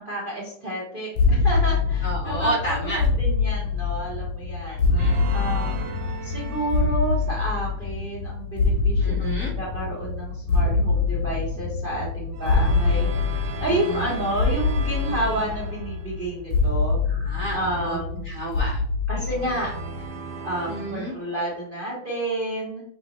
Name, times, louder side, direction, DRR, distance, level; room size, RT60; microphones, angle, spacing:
voice 1, 0.0-4.8 5.3-9.3 9.6-17.0 17.5-18.2 19.1-19.8 20.4-22.8, right 1 dB, 40° right, -4 dB, 0.8 m, -30 dB
sound 1, 1.2-20.1, left 4 dB, 85° left, 1.6 m, -25 dB
voice 2, 2.0-3.0 4.6-5.2 9.0-9.5 13.7-14.1 17.1-18.8 20.7-21.1, equal, 50° left, -3 dB, 1.1 m, -32 dB
sound 2, 4.9-7.3 12.3-16.4 19.2-21.6, right 6 dB, 75° right, 1.1 m, -38 dB
6.0 x 2.6 x 2.9 m, 0.71 s
omnidirectional pair, 2.4 m